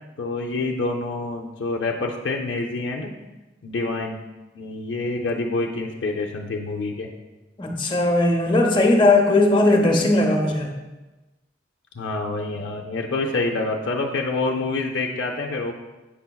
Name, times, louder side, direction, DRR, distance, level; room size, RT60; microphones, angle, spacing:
voice 1, 0.2-3.1 3.6-4.2 4.5-7.1 12.0-15.7, left 3 dB, 75° left, 1 dB, 0.5 m, -27 dB
voice 2, 7.6-10.8, left 2 dB, 25° left, 2 dB, 0.7 m, -18 dB
8.4 x 5.6 x 2.3 m, 1.1 s
head